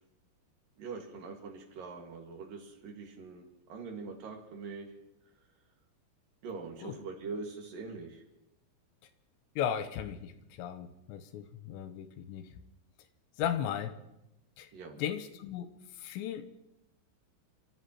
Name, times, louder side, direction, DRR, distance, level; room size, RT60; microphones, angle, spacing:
voice 1, 0.8-4.9 5.4-5.5 6.4-8.2 14.7-15.0, right 4 dB, 55° right, 2 dB, 3.2 m, -43 dB
voice 2, 9.6-10.3 10.6-12.5 13.4-14.0 14.6-14.7 15.0-16.4, left 9 dB, 85° left, 9 dB, 3.0 m, -36 dB
29.5 x 14.5 x 3.0 m, 0.89 s
omnidirectional pair, 5.3 m